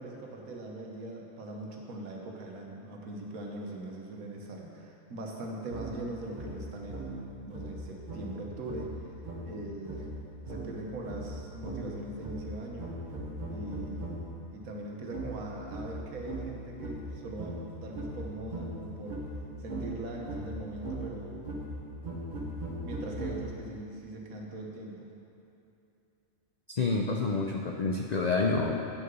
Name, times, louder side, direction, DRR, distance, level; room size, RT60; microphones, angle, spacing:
voice 1, 0.0-9.1 9.5-10.1 10.4-12.9 13.5-14.2 14.5-19.2 19.6-21.5 22.8-25.1, right 2 dB, 85° right, 0 dB, 1.6 m, -41 dB
sound 1, 5.7-14.4 15.1-23.8, right 1 dB, 40° right, 1.0 m, -39 dB
voice 2, 26.8-28.8, left 3 dB, 80° left, 1 dB, 0.3 m, -28 dB
8.7 x 6.6 x 5.4 m, 2.8 s
omnidirectional pair, 1.4 m